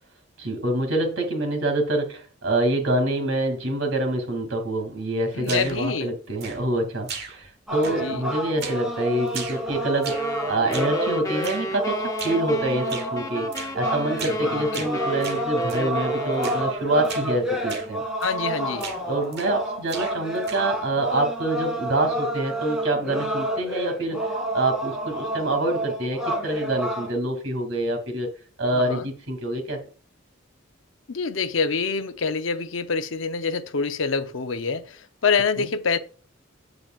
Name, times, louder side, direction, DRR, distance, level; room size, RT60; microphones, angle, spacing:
voice 1, 0.4-13.5 13.7-18.0 19.0-24.3 24.5-28.3 28.6-29.8 35.6-35.7, right 1 dB, 90° right, 2.6 m, -26 dB
voice 2, 5.3-6.1 8.0-8.2 14.2-14.9 18.2-18.9 28.7-29.1 31.1-36.0, left 5 dB, 75° left, 0.8 m, -26 dB
sound 1, 5.4-5.9 6.4-6.8 7.1-7.6 7.8-8.2 8.6-8.9 9.3-10.3 10.7-11.0 11.4-11.7 12.2-12.5 12.9-13.1 13.5-13.8 14.2-14.4 14.7-15.9 16.4-16.7 17.0-17.3 17.7-17.9 18.2-18.5 18.8-19.6 19.9-20.8, right 5 dB, 55° right, 1.7 m, -37 dB
sound 2, 7.7-27.1, right 1 dB, 5° right, 3.3 m, -29 dB
sound 3, 10.0-16.9, equal, 20° left, 0.7 m, -33 dB
8.7 x 7.9 x 2.4 m
head